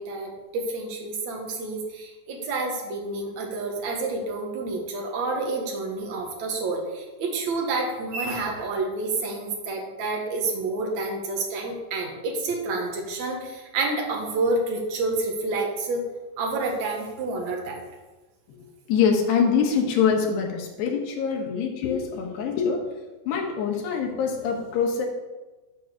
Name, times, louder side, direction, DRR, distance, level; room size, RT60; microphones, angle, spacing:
voice 1, 0.0-16.0 16.4-17.8, right 3 dB, 55° right, 0 dB, 2.3 m, -29 dB
voice 2, 18.9-22.9 23.3-25.1, left 6 dB, 70° left, 1 dB, 3.3 m, -24 dB
13.0 x 4.8 x 6.6 m, 1.2 s
omnidirectional pair, 5.3 m